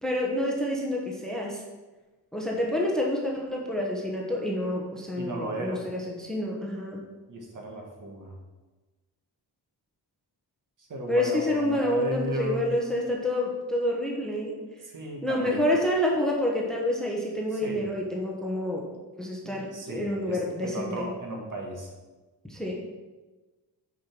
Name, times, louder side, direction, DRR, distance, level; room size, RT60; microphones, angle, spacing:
voice 1, 0.0-1.6 2.3-7.0 11.1-14.6 15.2-18.8 19.2-21.1 22.4-22.9, left 1 dB, ahead, -2 dB, 1.1 m, -28 dB
voice 2, 5.2-5.8 7.3-8.3 10.8-12.7 14.8-15.7 17.6-17.9 19.4-21.9, right 1 dB, 50° right, 0 dB, 1.7 m, -35 dB
6.4 x 5.6 x 6.0 m, 1.2 s
wide cardioid pair, 150°, 41 cm